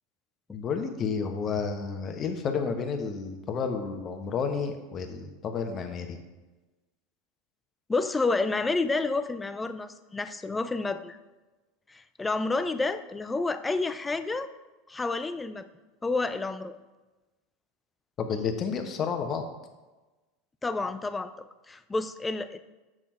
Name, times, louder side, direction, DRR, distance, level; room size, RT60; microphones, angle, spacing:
voice 1, 0.5-6.2 18.2-19.4, left 5 dB, 40° left, 6 dB, 1.1 m, -31 dB
voice 2, 7.9-11.2 11.9-14.5 14.9-15.7 16.0-16.8 20.6-22.6, left 3 dB, 15° left, 12 dB, 0.5 m, -29 dB
7.2 x 6.2 x 4.5 m, 1.2 s
hypercardioid pair, 90°, 0 cm